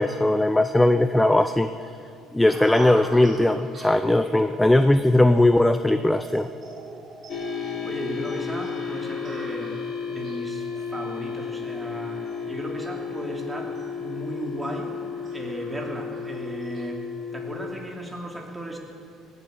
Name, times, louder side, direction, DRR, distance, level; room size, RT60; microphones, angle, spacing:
voice 1, 0.0-1.7 2.3-6.5, left 1 dB, 10° left, 10 dB, 0.5 m, -19 dB
sound 1, 2.5-16.9, right 3 dB, 40° right, 3.3 m, -44 dB
sound 2, 7.3-17.6, left 6 dB, 50° left, 3.2 m, -33 dB
voice 2, 7.8-9.8 10.1-15.0 15.3-17.0 17.3-18.8, right 1 dB, 10° right, 0 dB, 2.8 m, -35 dB
19.0 x 8.1 x 8.2 m, 2.5 s
cardioid pair, 105°, 0 cm